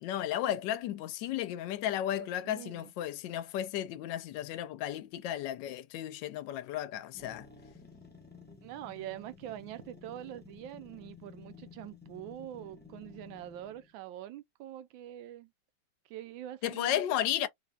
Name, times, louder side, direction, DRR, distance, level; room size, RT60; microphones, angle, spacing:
voice 1, 0.0-7.5 16.6-17.5, left 12 dB, 75° left, 1.2 m, -34 dB
voice 2, 2.2-2.9 8.6-15.5 16.1-17.5, right 12 dB, 80° right, 1.3 m, -44 dB
sound 1, 7.1-13.9, left 4 dB, 15° left, 0.4 m, -53 dB
3.3 x 2.7 x 2.3 m
omnidirectional pair, 2.1 m